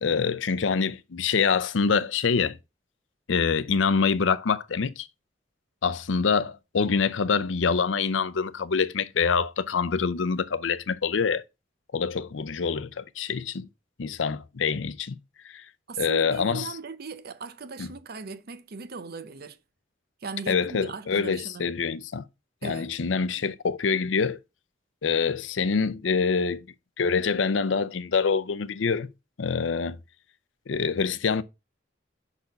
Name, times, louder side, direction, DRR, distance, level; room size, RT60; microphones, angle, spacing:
voice 1, 0.0-2.6 3.3-5.1 5.8-11.4 11.9-13.7 14.0-15.2 15.4-15.6 16.0-16.7 17.8-17.9 20.5-22.2 22.6-24.4 25.0-26.7 27.0-29.1 29.4-30.0 30.7-31.4, left 5 dB, 85° left, 0.6 m, -25 dB
voice 2, 15.9-19.6 20.2-21.7 22.6-22.9, right 4 dB, 55° right, 0.7 m, -38 dB
5.9 x 4.1 x 5.2 m
head